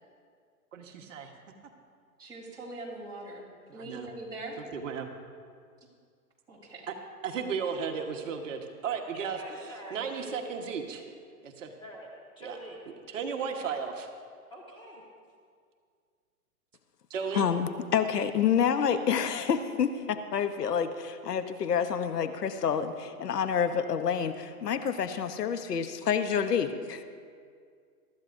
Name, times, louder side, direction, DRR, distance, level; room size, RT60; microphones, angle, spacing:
voice 1, 0.7-1.3 3.7-4.1 4.7-5.1 6.9-7.0 7.2-9.4 9.9-11.1 11.4-11.7 12.4-12.6 13.1-14.1 17.1-17.4, right 6 dB, 55° right, 3 dB, 1.4 m, -34 dB
voice 2, 2.2-4.6 6.5-6.8, right 2 dB, 10° right, -6 dB, 3.6 m, -42 dB
voice 3, 9.4-10.4 11.8-12.1 12.3-12.8 14.5-15.0, right 1 dB, 10° left, -4 dB, 1.4 m, -45 dB
voice 4, 17.3-27.0, left 7 dB, 85° left, 9 dB, 1.1 m, -28 dB
23.0 x 13.5 x 2.6 m, 2.1 s
hypercardioid pair, 150°, 46 cm